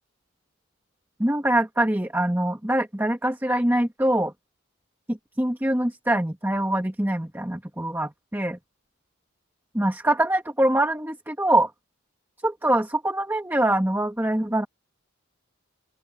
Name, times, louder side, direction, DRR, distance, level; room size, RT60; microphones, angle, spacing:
voice 1, 1.2-4.3 5.1-8.6 9.7-11.7 12.4-14.7, right 1 dB, 10° right, 1.4 m, -24 dB
open air
head